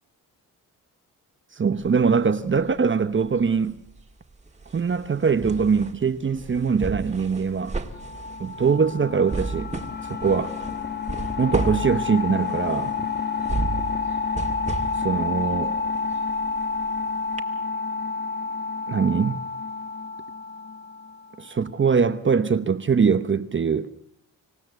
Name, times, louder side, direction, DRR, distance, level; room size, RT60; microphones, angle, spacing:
voice 1, 1.6-3.8 4.7-7.8 8.4-9.7 10.1-10.5 11.4-13.1 15.0-15.7 18.9-19.5 21.4-23.9, right 5 dB, 35° right, 1.0 m, -22 dB
sound 1, 1.8-2.9 3.2-17.0 17.4-17.5, right 3 dB, 20° right, 2.3 m, -34 dB
sound 2, 7.9-21.4, left 5 dB, 30° left, 1.6 m, -29 dB
26.5 x 16.0 x 8.0 m
cardioid pair, 85°, 34 cm